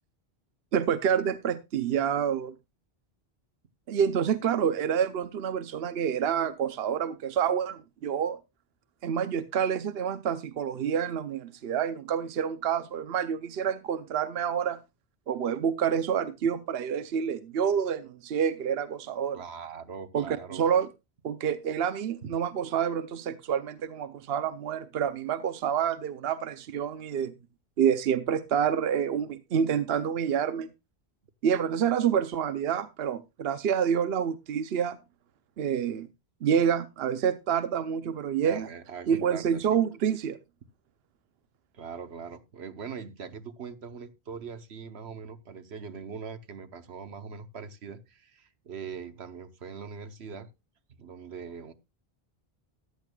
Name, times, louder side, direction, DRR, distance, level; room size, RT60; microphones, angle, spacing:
voice 1, 0.7-2.5 3.9-8.4 9.0-14.8 15.3-19.4 20.1-20.9 21.2-27.3 27.8-30.7 31.4-35.0 35.6-36.1 36.4-38.7 39.1-40.4, right 8 dB, 75° right, 12 dB, 0.9 m, -28 dB
voice 2, 19.3-20.7 38.4-39.6 40.0-40.1 41.7-50.5 51.0-51.7, right 6 dB, 90° right, 10 dB, 1.3 m, -41 dB
14.5 x 10.5 x 2.3 m, 0.24 s
omnidirectional pair, 1.1 m